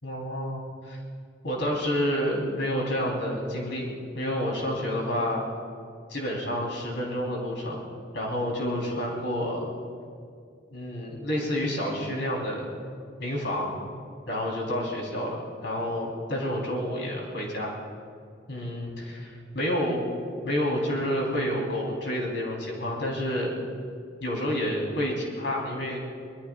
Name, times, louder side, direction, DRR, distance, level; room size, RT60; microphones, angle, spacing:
voice 1, 0.0-1.0 1.4-3.9 4.1-5.4 6.1-7.8 8.1-9.7 10.7-12.7 13.2-13.7 14.3-17.7 18.5-20.0 20.4-23.5 24.2-26.0, equal, 70° left, -2 dB, 4.1 m, -29 dB
25.5 x 20.5 x 2.5 m, 2.3 s
head